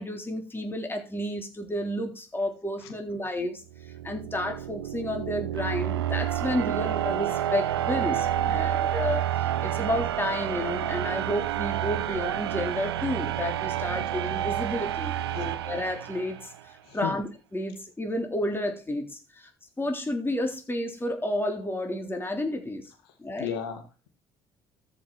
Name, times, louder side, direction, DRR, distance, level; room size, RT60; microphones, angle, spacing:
voice 1, 0.0-19.5 19.8-22.9 23.2-23.6, left 1 dB, 15° left, 3 dB, 3.6 m, -31 dB
sound 1, 3.7-16.6, right 12 dB, 85° right, 0.7 m, -29 dB
voice 2, 8.4-8.8 15.3-15.5 16.9-17.1 23.4-24.1, left 9 dB, 80° left, 7 dB, 1.7 m, -35 dB
13.5 x 6.2 x 6.3 m, 0.31 s
hypercardioid pair, 55°, 13 cm